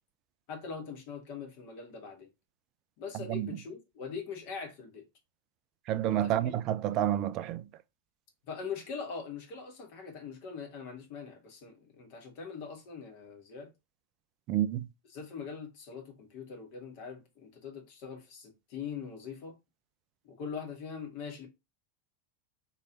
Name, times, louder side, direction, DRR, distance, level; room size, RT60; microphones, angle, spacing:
voice 1, 0.5-2.3 3.0-5.0 6.1-6.5 8.5-13.7 15.1-19.6 20.2-21.5, left 6 dB, 45° left, 1.5 m, -42 dB
voice 2, 5.9-7.6 14.5-14.9, right 12 dB, 40° right, 0.4 m, -29 dB
3.1 x 3.1 x 4.0 m
figure-of-eight pair, 90°, 0 cm